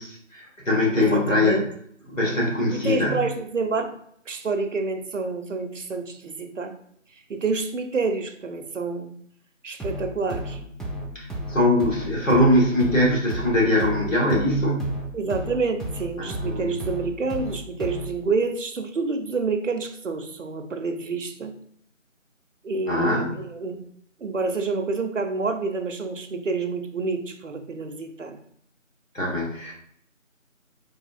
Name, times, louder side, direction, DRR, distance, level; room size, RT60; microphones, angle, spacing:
voice 1, 0.3-1.6 2.1-3.2 11.1-15.0 16.2-16.7 22.9-23.3 29.1-29.7, left 1 dB, 70° left, -3 dB, 1.3 m, -22 dB
voice 2, 0.9-1.7 2.2-3.9 4.3-6.7 7.3-9.1 9.6-10.6 15.1-21.5 22.6-23.8 24.2-28.4, right 4 dB, 70° right, 6 dB, 0.5 m, -28 dB
sound 1, 9.8-18.3, right 1 dB, ahead, 0.4 m, -34 dB
3.4 x 2.4 x 2.4 m, 0.68 s
figure-of-eight pair, 175°, 40 cm